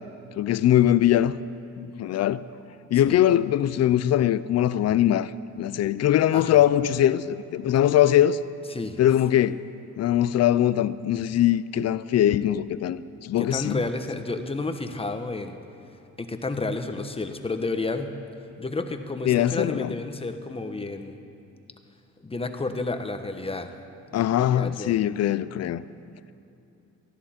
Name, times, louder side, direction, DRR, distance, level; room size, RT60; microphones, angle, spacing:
voice 1, 0.4-1.3 1.8-2.4 2.9-7.2 7.5-8.4 9.0-9.6 10.0-13.8 19.3-19.9 24.1-25.8, left 11 dB, 60° left, 0.5 m, -21 dB
voice 2, 6.3-6.6 8.7-9.0 13.4-15.6 16.2-18.1 18.6-21.2 22.2-23.7 24.1-25.0, left 3 dB, 20° left, 1.0 m, -31 dB
19.0 x 13.5 x 4.3 m
cardioid pair, 90°, 30 cm